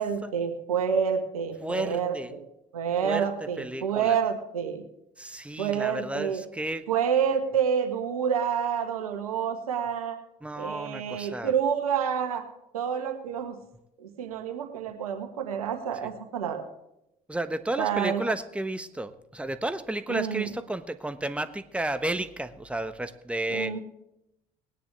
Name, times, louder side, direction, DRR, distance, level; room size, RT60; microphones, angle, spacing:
voice 1, 0.0-2.4 2.7-4.8 5.6-6.4 6.9-10.2 10.6-12.4 12.7-13.6 14.0-16.6 17.8-18.2 20.1-20.5 23.5-23.8, right 7 dB, 90° right, 5 dB, 1.6 m, -28 dB
voice 2, 1.6-2.3 3.0-4.2 5.2-6.8 10.4-11.5 16.0-16.1 17.3-23.8, right 1 dB, 5° right, 11 dB, 1.1 m, -32 dB
19.0 x 10.0 x 3.3 m, 0.83 s
hypercardioid pair, 55°, 18 cm